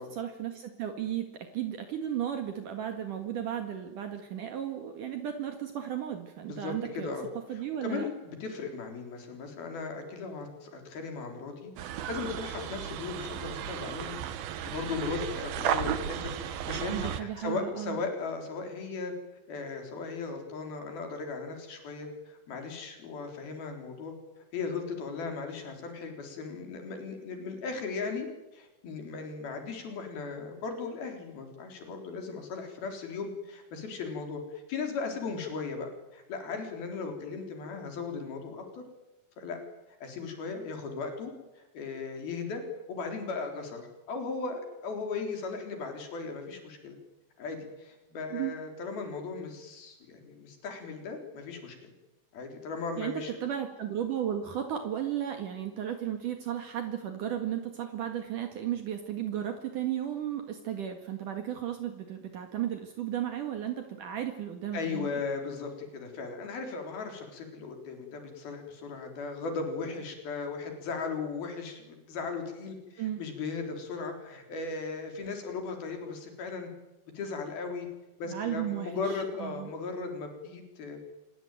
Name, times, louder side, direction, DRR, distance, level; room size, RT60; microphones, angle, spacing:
voice 1, 0.0-7.1 7.5-8.1 16.9-18.0 48.3-48.5 53.0-65.1 73.0-73.2 78.3-79.7, right 10 dB, 65° right, 5 dB, 3.3 m, -34 dB
voice 2, 6.5-7.3 7.5-11.7 12.1-19.1 19.5-24.1 24.5-28.3 28.5-38.8 39.4-39.6 40.0-42.6 42.9-47.0 47.4-51.9 52.3-53.4 64.7-76.7 77.1-77.9 78.2-81.1, left 4 dB, 90° left, 4 dB, 5.8 m, -37 dB
sound 1, 11.8-17.2, right 10 dB, 80° right, 3.2 m, -34 dB
26.5 x 22.5 x 9.2 m, 1.0 s
omnidirectional pair, 4.2 m